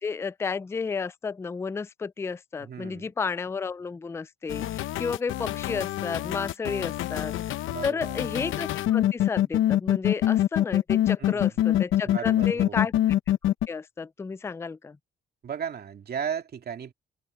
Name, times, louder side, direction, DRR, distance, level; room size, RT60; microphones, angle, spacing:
voice 1, 0.0-12.9 13.4-15.0, left 5 dB, 15° left, 0.3 m, -32 dB
voice 2, 2.6-3.1 7.7-8.2 11.2-11.5 12.0-12.9 15.4-16.9, right 8 dB, 50° right, 2.4 m, -35 dB
sound 1, 4.5-13.7, left 12 dB, 80° left, 0.8 m, -25 dB
open air
cardioid pair, 90°, 20 cm